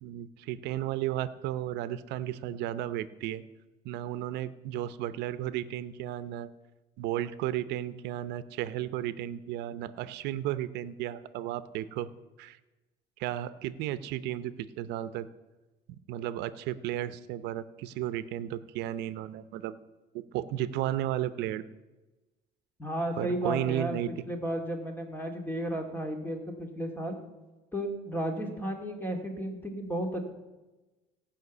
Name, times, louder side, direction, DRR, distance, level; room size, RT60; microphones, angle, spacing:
voice 1, 0.0-3.4 3.8-6.5 7.0-12.1 12.4-12.6 13.2-15.3 15.9-19.8 20.3-21.6 23.2-24.1, right 12 dB, 90° right, 14 dB, 0.7 m, -34 dB
voice 2, 22.8-24.0 24.3-27.2 27.7-30.2, right 1 dB, 10° left, 3 dB, 2.3 m, -33 dB
17.5 x 5.9 x 8.3 m, 1.1 s
cardioid pair, 110°, 17 cm